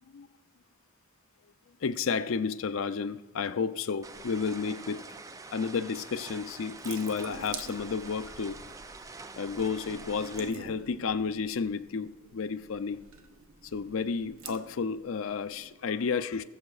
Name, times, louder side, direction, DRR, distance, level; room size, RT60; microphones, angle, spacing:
voice 1, 1.8-5.0 5.5-8.6 9.4-13.0 13.7-16.4, left 5 dB, 65° left, 0.5 m, -32 dB
sound 1, 4.0-10.5, right 3 dB, 15° right, 0.3 m, -46 dB
Water tap faucet / Sink (filling or washing) / Drip, 6.1-15.9, right 6 dB, 65° right, 0.8 m, -49 dB
21.0 x 7.1 x 2.4 m
head